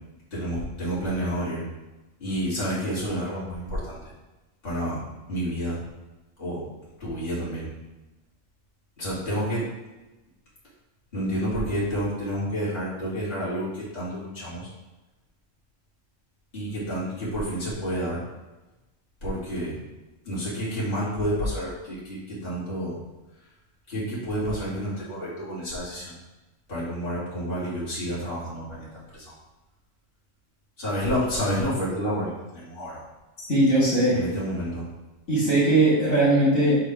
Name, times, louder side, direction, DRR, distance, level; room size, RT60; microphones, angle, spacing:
voice 1, 0.3-1.6 2.2-4.0 4.6-5.0 5.3-5.8 6.4-6.6 7.0-7.7 9.0-9.7 11.1-14.7 16.5-18.2 19.2-19.8 20.2-23.0 23.9-26.1 26.7-29.3 30.8-33.0 34.1-34.9, equal, 45° left, -10 dB, 2.6 m, -29 dB
voice 2, 33.5-34.2 35.3-36.8, right 1 dB, 80° left, -8 dB, 2.6 m, -19 dB
4.8 x 4.7 x 4.8 m, 1.1 s
omnidirectional pair, 1.4 m